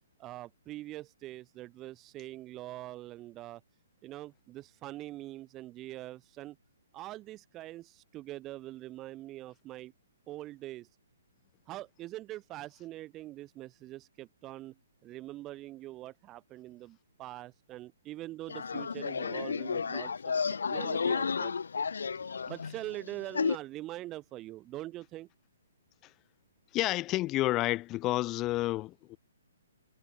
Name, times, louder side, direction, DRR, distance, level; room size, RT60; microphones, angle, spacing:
voice 1, 0.2-3.6 4.0-6.6 6.9-9.9 10.3-10.9 11.7-14.8 15.0-20.1 20.7-21.6 22.5-25.3, right 16 dB, 20° right, 1.5 m, -43 dB
sound 1, 18.5-23.6, left 5 dB, 85° left, 2.2 m, -32 dB
voice 2, 26.7-29.2, left 17 dB, 20° left, 3.5 m, -30 dB
hypercardioid pair, 160°, 0 cm